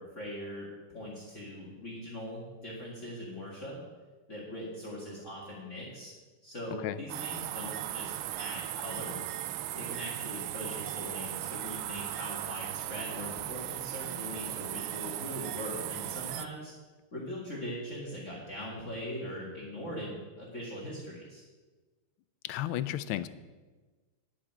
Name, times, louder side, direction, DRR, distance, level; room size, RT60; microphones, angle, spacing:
voice 1, 0.0-3.8 4.3-6.1 6.4-8.1 8.4-9.2 9.7-16.7 17.1-21.4, equal, 35° left, -7 dB, 2.3 m, -41 dB
sound 1, 7.1-16.5, right 13 dB, 80° right, 1.4 m, -37 dB
voice 2, 22.4-23.3, left 13 dB, 80° left, 14 dB, 1.4 m, -33 dB
10.0 x 6.0 x 8.7 m, 1.3 s
omnidirectional pair, 2.3 m